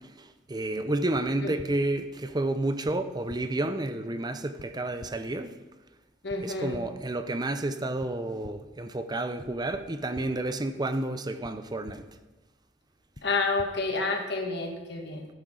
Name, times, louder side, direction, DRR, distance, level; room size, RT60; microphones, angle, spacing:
voice 1, 0.2-5.5 6.4-12.1, right 2 dB, 25° right, 9 dB, 0.6 m, -30 dB
sound 1, 1.1-1.2 1.6-1.7 2.9-3.0 3.3-3.4 4.6-4.7 5.0-5.1 6.3-6.4 6.7-6.8 8.0-8.1 8.4-8.5 9.7-9.8 10.1-10.2 11.4-11.5 11.9-12.0 13.1-13.2 13.6-13.7, left 2 dB, 40° left, 0.8 m, -44 dB
voice 2, 6.2-6.8 13.2-15.3, left 3 dB, 65° left, 2 dB, 1.7 m, -29 dB
16.0 x 9.6 x 3.9 m, 1.2 s
head